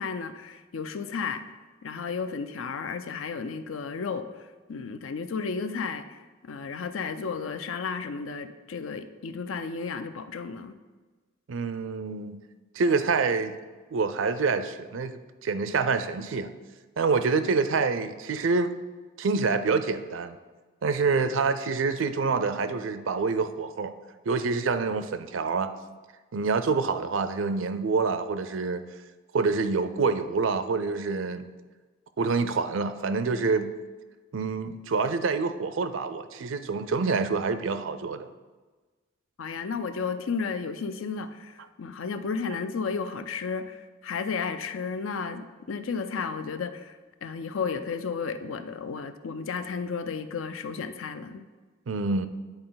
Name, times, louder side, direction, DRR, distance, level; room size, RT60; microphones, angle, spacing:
voice 1, 0.0-1.4 1.8-4.3 4.7-6.2 6.4-10.8 39.4-47.0 47.2-51.4, left 5 dB, 85° left, 10 dB, 0.5 m, -33 dB
voice 2, 11.5-12.4 12.7-13.6 13.9-16.5 17.0-18.7 19.2-20.4 20.8-23.9 24.3-25.7 26.3-28.8 29.3-31.5 32.2-33.7 34.3-38.3 51.9-52.3, right 4 dB, 75° right, 11 dB, 0.5 m, -26 dB
9.6 x 4.3 x 3.9 m, 1.3 s
head